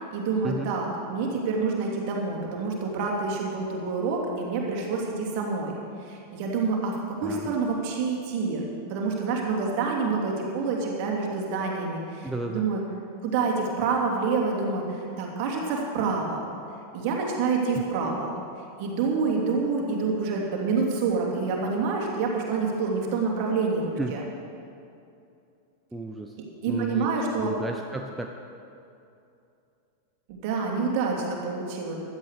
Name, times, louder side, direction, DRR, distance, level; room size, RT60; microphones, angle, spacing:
voice 1, 0.1-5.7 6.0-8.6 8.9-12.8 13.2-16.4 16.9-18.3 18.8-24.2 26.6-27.5 30.3-32.0, right 4 dB, 45° right, -1 dB, 3.0 m, -27 dB
voice 2, 7.2-7.6 12.2-12.7 24.0-24.2 25.9-26.4 26.7-27.1 27.3-28.3, right 2 dB, 5° right, 2 dB, 0.8 m, -33 dB
16.0 x 12.0 x 5.0 m, 2.6 s
figure-of-eight pair, 90°, 0 cm